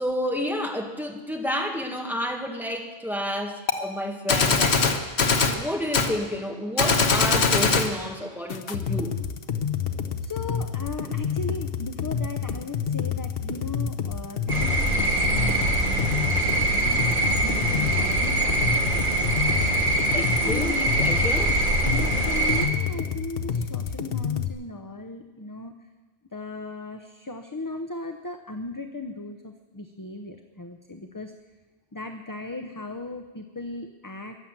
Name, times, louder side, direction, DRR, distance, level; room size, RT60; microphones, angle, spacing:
voice 1, 0.0-4.8 5.4-9.2 20.1-21.5, equal, ahead, 2 dB, 1.7 m, -30 dB
Gunshot gunfire, 3.7-3.8 4.3-5.6 5.9-6.1 6.8-7.9, left 4 dB, 80° left, 1.4 m, -21 dB
sound 1, 8.5-24.5, left 7 dB, 65° left, 1.1 m, -29 dB
voice 2, 10.2-19.3 20.1-20.9 21.8-25.7 26.3-31.3 31.9-34.4, left 3 dB, 20° left, 6 dB, 0.7 m, -37 dB
sound 2, 14.5-22.7, right 2 dB, 50° right, 2.1 m, -23 dB
22.5 x 7.6 x 7.5 m, 1.4 s
omnidirectional pair, 1.1 m